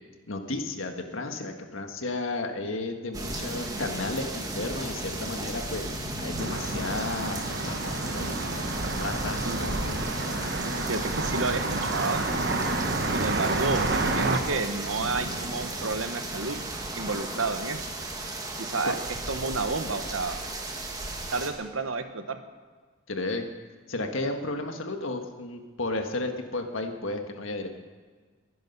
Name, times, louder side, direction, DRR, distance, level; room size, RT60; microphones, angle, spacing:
voice 1, 0.3-5.8 6.2-8.4 9.0-10.0 18.8-19.0 23.1-23.4 23.9-27.7, left 2 dB, 75° left, 5 dB, 1.6 m, -33 dB
sound 1, 3.1-21.5, right 2 dB, 15° right, 1.5 m, -34 dB
sound 2, 6.4-14.4, right 2 dB, 55° right, 1.3 m, -30 dB
voice 2, 10.9-12.2 13.0-16.6 16.9-17.9 18.6-20.4 21.3-22.4, right 3 dB, 80° right, 8 dB, 1.2 m, -31 dB
21.5 x 10.5 x 5.5 m, 1.5 s
head